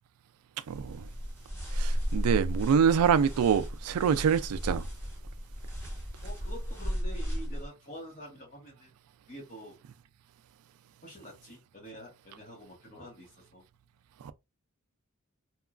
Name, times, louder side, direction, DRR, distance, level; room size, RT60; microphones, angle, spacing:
sound 1, 0.7-7.7, equal, 10° left, 1.0 m, -34 dB
voice 1, 0.7-1.1 1.7-4.9 14.2-14.3, right 7 dB, 75° right, 0.3 m, -25 dB
voice 2, 6.2-8.9 9.3-9.8 11.0-13.6, equal, 35° left, 0.9 m, -47 dB
2.9 x 2.3 x 2.4 m
head